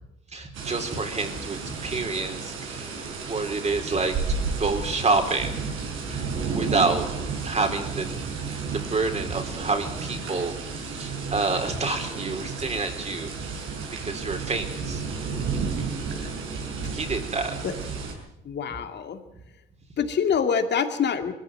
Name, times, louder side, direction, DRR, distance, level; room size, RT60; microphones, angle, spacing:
voice 1, 0.3-5.6 6.1-7.0 7.4-10.5 10.9-13.3 13.9-15.0 16.9-17.6, right 3 dB, 35° right, 5 dB, 4.1 m, -28 dB
sound 1, 0.5-18.1, right 5 dB, 85° right, 5.3 m, -32 dB
voice 2, 18.4-19.2 20.0-21.3, left 7 dB, 60° left, 7 dB, 2.4 m, -25 dB
22.0 x 14.5 x 9.2 m, 0.84 s
cardioid pair, 90°, 20 cm